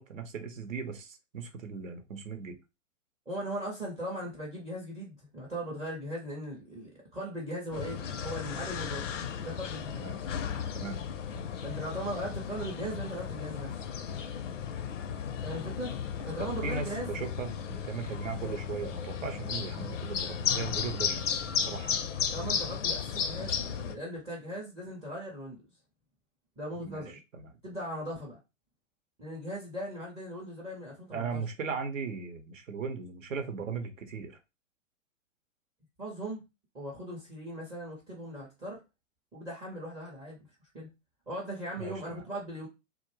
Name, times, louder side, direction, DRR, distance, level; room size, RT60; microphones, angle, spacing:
voice 1, 0.0-2.6 10.0-10.2 10.7-11.0 11.3-11.4 16.4-21.3 21.6-22.1 26.8-27.6 31.1-34.4 41.8-42.2, right 5 dB, 80° right, 0.7 m, -38 dB
voice 2, 3.3-10.1 11.6-13.8 15.4-17.2 22.3-25.6 26.6-27.1 27.6-28.4 29.2-31.4 36.0-36.4 36.7-38.8 39.3-40.4 40.7-40.9 41.3-42.7, right 1 dB, 10° right, 0.4 m, -39 dB
sound 1, 7.7-23.9, left 7 dB, 70° left, 0.5 m, -34 dB
2.3 x 2.1 x 3.0 m
figure-of-eight pair, 120°, 38 cm